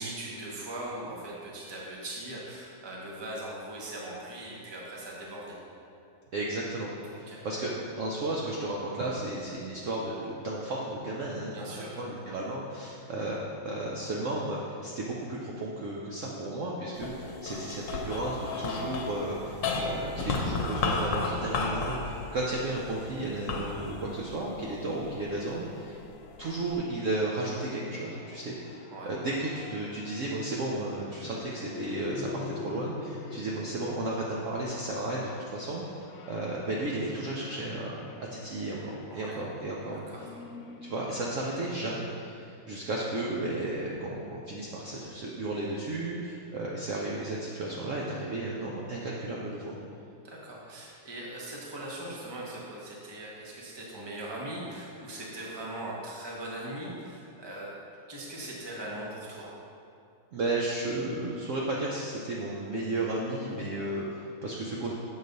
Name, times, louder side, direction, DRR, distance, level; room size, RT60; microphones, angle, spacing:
voice 1, 0.0-5.6 7.1-7.4 11.5-12.0 28.9-29.1 39.1-39.4 40.1-40.3 50.2-57.8 58.1-59.5 63.4-63.6, right 1 dB, 20° right, -4 dB, 0.6 m, -40 dB
voice 2, 6.3-11.7 11.9-13.4 13.6-26.0 26.4-28.8 29.0-38.0 38.3-40.3 40.8-49.7 60.3-64.9, right 2 dB, 80° right, -4 dB, 0.7 m, -33 dB
sound 1, 17.0-25.4 26.0-26.8, left 3 dB, 70° left, 1.4 m, -34 dB
sound 2, 21.2-41.0, left 3 dB, 90° left, 1.5 m, -47 dB
7.5 x 4.0 x 5.2 m, 2.6 s
omnidirectional pair, 2.2 m